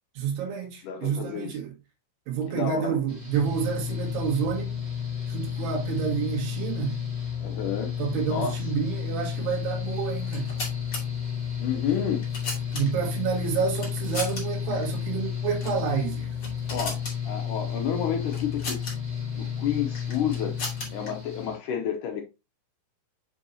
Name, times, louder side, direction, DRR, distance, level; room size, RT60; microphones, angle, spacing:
voice 1, 0.2-1.7 2.3-4.8 5.3-7.0 8.0-10.5 12.7-16.3, right 7 dB, 75° right, 3.7 m, -29 dB
voice 2, 0.8-1.6 2.5-3.0 7.4-7.9 8.3-8.5 11.6-12.3 16.7-18.9 19.4-20.6 20.9-22.2, left 8 dB, 80° left, 1.8 m, -30 dB
Mechanical fan, 3.1-21.6, left 8 dB, 45° right, 0.5 m, -32 dB
sound 1, 10.2-11.0 11.9-13.1 13.7-14.4 14.7-14.8 15.5-15.8 16.2-17.2 18.3-18.9 19.9-21.1, left 2 dB, 35° left, 2.3 m, -36 dB
7.2 x 5.5 x 2.8 m
omnidirectional pair, 4.8 m